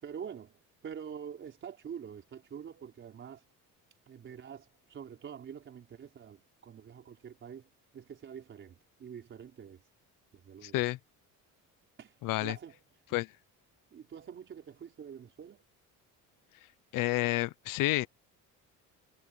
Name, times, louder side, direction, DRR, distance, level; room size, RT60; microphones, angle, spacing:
voice 1, 0.0-3.4 4.1-9.8 10.3-10.8 12.0-12.1 12.4-12.8 13.9-15.6, right 8 dB, 35° right, 4.5 m, -46 dB
voice 2, 10.6-11.0 12.2-12.6 13.1-13.3 16.9-18.1, left 18 dB, 70° left, 0.8 m, -29 dB
cardioid pair, 160°, 34 cm